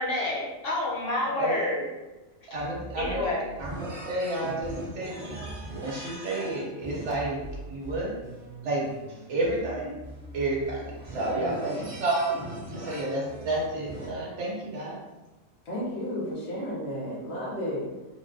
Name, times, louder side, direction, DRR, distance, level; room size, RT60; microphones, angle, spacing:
voice 1, 0.0-1.9 3.0-3.4, left 2 dB, 50° left, -4 dB, 0.8 m, -28 dB
sound 1, 2.5-14.1, right 1 dB, 40° right, 0.5 m, -40 dB
voice 2, 2.5-3.3 3.6-5.4 5.8-7.4 7.7-8.2 8.6-8.9 9.3-10.0 10.3-11.6 12.0-12.3 12.7-15.0, right 2 dB, 65° right, -3 dB, 1.1 m, -30 dB
voice 3, 11.3-11.9 15.6-17.9, equal, 90° left, -6 dB, 1.4 m, -33 dB
3.8 x 2.2 x 2.6 m, 1.1 s
omnidirectional pair, 1.4 m